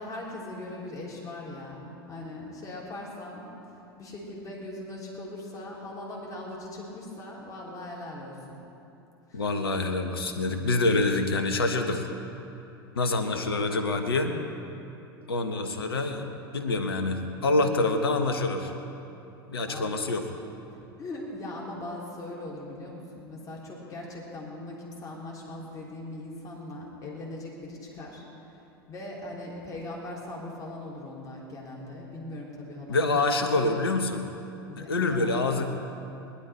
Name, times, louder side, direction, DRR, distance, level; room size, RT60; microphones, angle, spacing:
voice 1, 0.0-3.5 4.0-8.6 9.3-9.4 19.7-19.9 21.0-28.6 28.9-33.4 34.7-35.4, left 2 dB, 25° left, -3 dB, 3.3 m, -40 dB
voice 2, 9.3-12.1 12.9-14.4 15.3-18.7 19.5-20.3 32.9-34.3 34.8-35.6, left 2 dB, 75° left, 7 dB, 1.3 m, -26 dB
20.0 x 11.5 x 4.4 m, 2.9 s
figure-of-eight pair, 85°, 13 cm